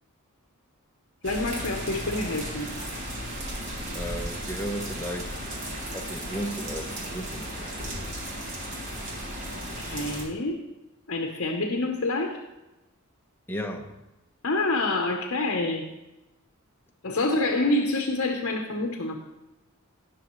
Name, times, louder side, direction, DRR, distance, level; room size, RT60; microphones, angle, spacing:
voice 1, 1.2-2.7 9.8-10.6 11.1-12.4 14.4-15.9 17.0-19.2, left 2 dB, 60° left, 3 dB, 1.0 m, -27 dB
sound 1, 1.2-10.2, equal, 60° right, 2.5 m, -35 dB
voice 2, 3.9-5.3 5.9-7.8 13.5-14.0, equal, 10° left, 2 dB, 0.8 m, -34 dB
18.0 x 6.4 x 3.1 m, 1.0 s
head